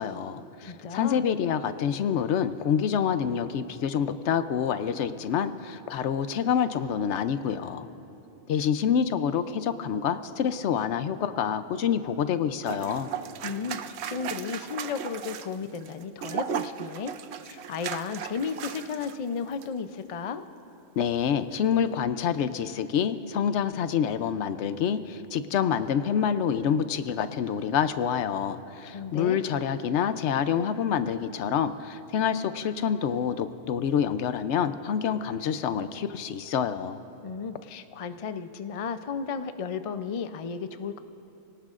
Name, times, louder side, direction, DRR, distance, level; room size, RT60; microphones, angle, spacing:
voice 1, 0.0-7.9 8.5-13.1 21.0-37.0, left 8 dB, 75° left, 11 dB, 0.9 m, -27 dB
voice 2, 0.6-1.2 13.4-17.1 17.4-20.4 28.9-29.4 37.2-41.0, left 6 dB, 45° left, 10 dB, 0.4 m, -34 dB
sound 1, 12.7-19.2 19.5-19.7, right 9 dB, 70° right, 0.8 m, -36 dB
28.0 x 18.5 x 2.5 m, 2.9 s
omnidirectional pair, 1.2 m